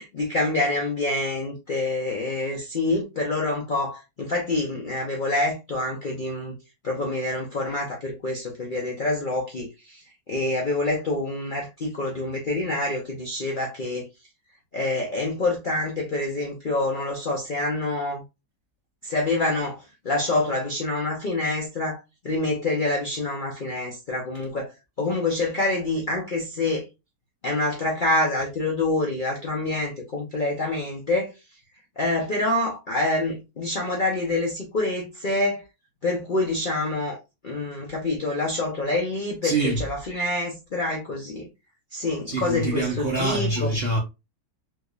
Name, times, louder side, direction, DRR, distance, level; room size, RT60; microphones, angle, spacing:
voice 1, 0.0-6.5 6.8-14.1 14.7-18.2 19.0-24.7 25.0-26.8 27.4-31.3 32.0-35.6 36.0-37.2 37.4-41.5 41.9-43.7, left 2 dB, 55° left, 0.5 m, -26 dB
voice 2, 39.4-39.8 42.3-44.0, right 2 dB, 55° right, 0.7 m, -25 dB
3.5 x 3.0 x 2.3 m
omnidirectional pair, 1.8 m